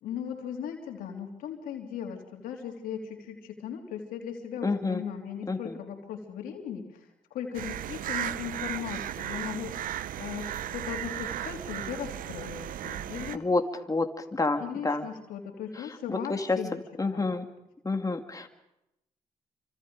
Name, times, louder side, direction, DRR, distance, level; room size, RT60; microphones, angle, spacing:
voice 1, 0.0-9.8 10.2-13.4 14.5-16.8 17.1-17.3, left 8 dB, 85° left, 2 dB, 3.3 m, -38 dB
voice 2, 4.6-5.0 5.5-5.8 13.3-15.1 15.7-17.5 17.8-18.5, left 3 dB, 25° left, 5 dB, 2.2 m, -29 dB
sound 1, 7.5-13.4, right 11 dB, 75° right, 0.7 m, -35 dB
27.5 x 25.5 x 5.2 m, 0.89 s
supercardioid pair, 45°, 14 cm